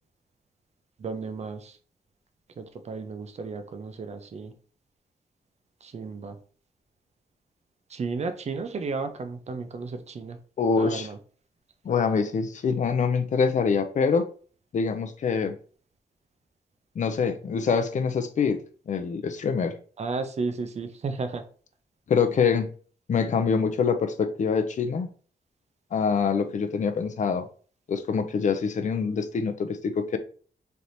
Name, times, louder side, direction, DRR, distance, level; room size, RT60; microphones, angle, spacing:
voice 1, 1.0-1.8 2.6-4.5 5.8-6.4 7.9-10.4 10.8-11.2 20.0-21.4, right 4 dB, 40° right, 0.5 m, -33 dB
voice 2, 10.6-11.1 11.8-14.3 14.7-15.5 17.0-19.8 22.1-22.7 23.1-25.1 25.9-27.5 27.9-30.2, left 5 dB, 45° left, 0.5 m, -25 dB
3.3 x 2.9 x 4.0 m
wide cardioid pair, 165°, 17 cm